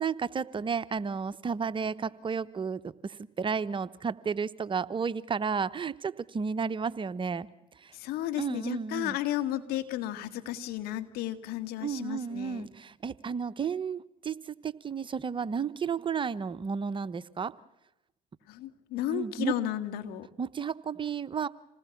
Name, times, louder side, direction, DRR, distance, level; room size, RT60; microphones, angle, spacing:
voice 1, 0.0-7.5 7.7-7.9 8.4-9.2 11.8-17.5 19.1-19.5 20.4-21.5, right 6 dB, 30° right, 15 dB, 0.9 m, -32 dB
voice 2, 7.9-12.7 18.5-20.3, left 13 dB, 65° left, 9 dB, 1.9 m, -33 dB
27.0 x 19.0 x 7.2 m, 0.89 s
hypercardioid pair, 65°, 17 cm